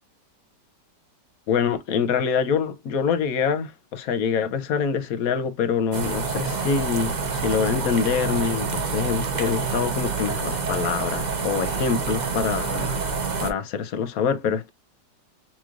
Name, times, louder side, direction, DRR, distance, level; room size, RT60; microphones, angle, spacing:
voice 1, 1.5-12.9 13.4-14.7, left 6 dB, 65° left, 1.0 m, -25 dB
sound 1, 5.9-13.5, right 5 dB, 40° right, 0.6 m, -27 dB
5.9 x 3.0 x 2.4 m
omnidirectional pair, 1.9 m